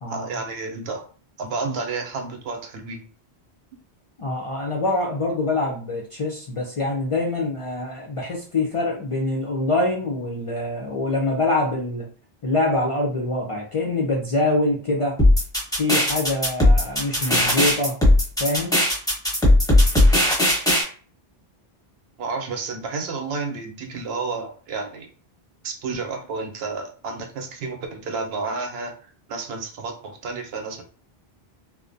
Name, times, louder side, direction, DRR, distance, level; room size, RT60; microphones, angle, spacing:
voice 1, 0.1-1.0 1.4-3.0 22.2-25.1 25.6-28.9 29.3-30.8, right 4 dB, 75° right, 4 dB, 0.8 m, -31 dB
voice 2, 4.2-12.1 12.4-15.2 15.8-18.0 18.4-18.8, left 2 dB, 45° left, -2 dB, 0.4 m, -24 dB
sound 1, 15.2-20.8, left 1 dB, 5° left, 0.7 m, -17 dB
2.5 x 2.1 x 2.5 m, 0.41 s
omnidirectional pair, 1.1 m